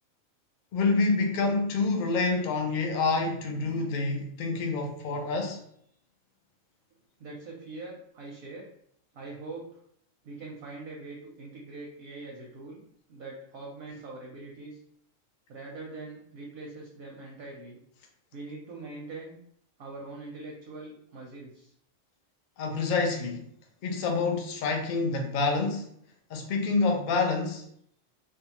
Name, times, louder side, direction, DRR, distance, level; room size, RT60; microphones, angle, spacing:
voice 1, 0.7-5.6 22.6-23.4 23.8-25.9 26.3-27.6, left 3 dB, 80° left, 3 dB, 0.4 m, -27 dB
voice 2, 7.2-8.7 9.1-9.8 10.2-12.8 13.1-14.8 15.5-17.8 18.3-19.4 19.8-21.7, right 3 dB, 65° right, -1 dB, 0.6 m, -42 dB
2.6 x 2.2 x 2.8 m, 0.69 s
omnidirectional pair, 1.4 m